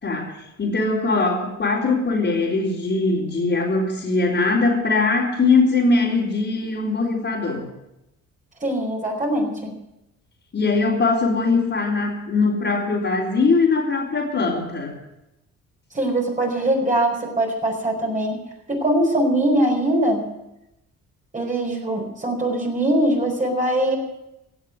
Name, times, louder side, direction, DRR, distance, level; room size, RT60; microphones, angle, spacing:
voice 1, 0.0-0.3 0.6-7.7 10.5-15.0, left 3 dB, 40° left, -6 dB, 3.8 m, -21 dB
voice 2, 8.6-9.8 15.9-18.4 18.7-20.3 21.3-24.0, right 1 dB, 25° right, -1 dB, 5.0 m, -22 dB
17.0 x 7.3 x 9.4 m, 0.90 s
cardioid pair, 90°, 30 cm